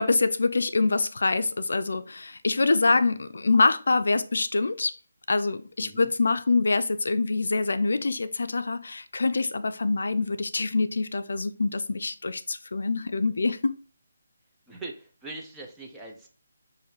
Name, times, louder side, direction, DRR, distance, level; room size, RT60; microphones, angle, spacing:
voice 1, 0.0-4.9 5.3-13.8, left 3 dB, 75° left, 0.4 m, -25 dB
voice 2, 5.8-6.1 14.7-16.3, right 2 dB, 5° right, 0.6 m, -41 dB
6.6 x 2.6 x 2.9 m
hypercardioid pair, 170°, 0 cm